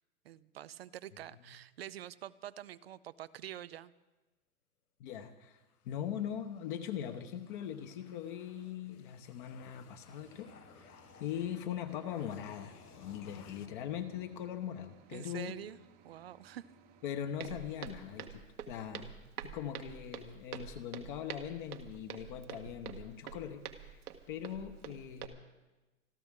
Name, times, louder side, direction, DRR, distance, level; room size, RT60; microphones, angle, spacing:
voice 1, 0.2-3.9 15.1-15.8 16.0-16.7, right 12 dB, 45° right, 16 dB, 0.5 m, -46 dB
voice 2, 5.0-15.5 17.0-19.1 19.4-24.0 24.3-25.4, left 9 dB, 35° left, 6 dB, 1.0 m, -41 dB
sound 1, 5.6-14.9, left 8 dB, 85° left, 1.4 m, -59 dB
sound 2, 10.1-18.5, right 7 dB, 20° right, 0.9 m, -63 dB
Walk footsteps, 17.4-25.3, right 8 dB, 85° right, 1.7 m, -46 dB
27.0 x 12.5 x 3.7 m, 1.1 s
hypercardioid pair, 145°, 44 cm